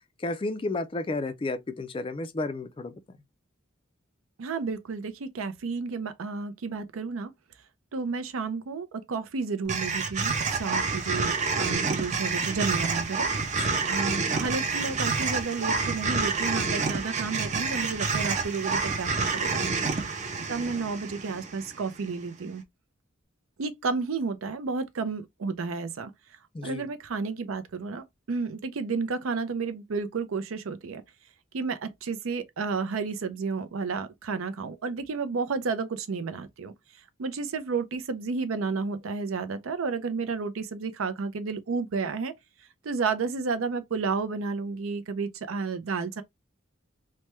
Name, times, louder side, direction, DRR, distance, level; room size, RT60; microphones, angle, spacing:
voice 1, 0.2-3.2 13.6-13.9 26.5-26.9, left 2 dB, 25° left, 0.3 m, -32 dB
voice 2, 4.4-7.3 7.9-13.3 13.5-13.6 13.9-19.7 20.5-22.6 23.6-26.1 26.6-31.0 31.5-36.7 37.2-42.3 42.8-46.2, right 4 dB, 80° right, 0.5 m, -31 dB
sound 1, 9.7-22.0, right 4 dB, 35° right, 0.5 m, -28 dB
3.2 x 2.1 x 2.9 m
head